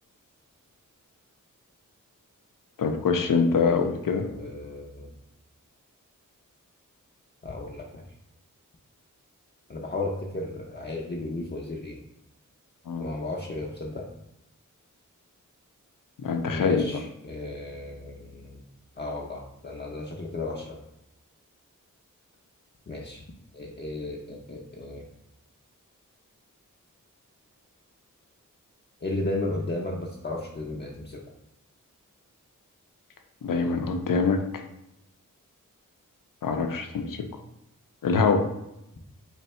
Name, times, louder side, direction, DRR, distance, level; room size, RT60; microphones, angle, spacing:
voice 1, 2.8-4.3 12.9-13.1 16.2-16.9 33.4-34.6 36.4-37.2 38.0-38.5, left 5 dB, 80° left, 6 dB, 0.5 m, -24 dB
voice 2, 4.3-5.1 7.4-8.0 9.7-12.0 13.0-14.1 16.4-18.6 19.0-20.8 22.9-23.2 23.5-25.1 29.0-31.2, left 2 dB, 30° left, -2 dB, 0.6 m, -34 dB
3.2 x 2.7 x 4.2 m, 0.84 s
cardioid pair, 50°, 32 cm